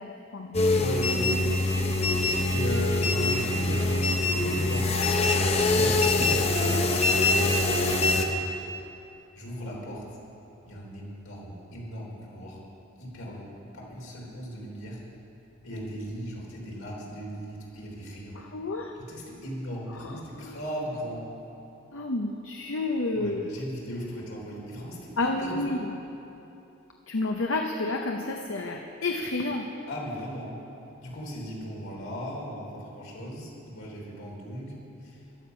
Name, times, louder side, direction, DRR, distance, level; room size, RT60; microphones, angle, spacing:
voice 1, 0.0-0.6 6.2-6.3 18.3-18.9 19.9-20.6 21.9-23.5 25.2-26.0 27.1-29.7, left 2 dB, 70° left, 2 dB, 0.7 m, -30 dB
sound 1, 0.5-8.2, left 2 dB, 30° left, 0.8 m, -24 dB
voice 2, 0.7-1.5 2.5-5.1 5.7-8.5 9.4-10.1 10.7-12.6 13.0-15.0 15.6-18.4 19.1-21.2 23.1-25.8 29.9-30.6 31.0-34.7 35.0-35.2, equal, 90° left, -3 dB, 3.6 m, -37 dB
14.5 x 11.5 x 5.5 m, 2.9 s
head